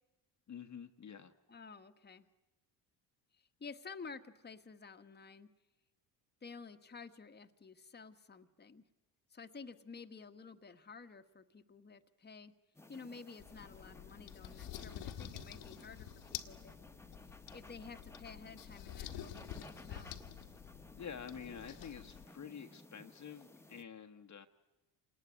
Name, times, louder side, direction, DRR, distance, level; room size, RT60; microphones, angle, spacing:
voice 1, 0.5-1.3 21.0-24.5, left 7 dB, 40° left, 5 dB, 1.2 m, -48 dB
voice 2, 1.5-2.2 3.6-5.5 6.4-8.8 9.3-12.5 12.9-16.7 17.2-19.3 19.6-20.2, left 5 dB, 20° left, 7 dB, 1.4 m, -52 dB
sound 1, 12.7-23.8, left 2 dB, 5° left, 1.3 m, -57 dB
sound 2, 13.4-22.3, left 11 dB, 75° left, 1.6 m, -49 dB
27.0 x 19.0 x 9.6 m, 1.1 s
supercardioid pair, 80°, 45 cm